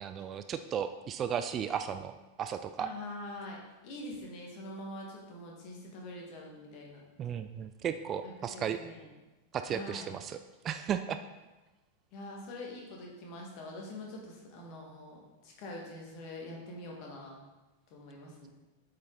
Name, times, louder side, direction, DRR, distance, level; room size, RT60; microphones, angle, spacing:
voice 1, 0.0-2.1 2.4-2.9 7.2-8.8 9.6-10.4 10.6-11.2, right 8 dB, 30° right, 9 dB, 0.3 m, -35 dB
voice 2, 2.8-7.0 8.2-9.1 9.6-10.2 12.1-17.4 17.9-18.5, left 1 dB, 40° left, -1 dB, 1.9 m, -44 dB
8.1 x 5.1 x 4.0 m, 1.1 s
figure-of-eight pair, 90°, 0 cm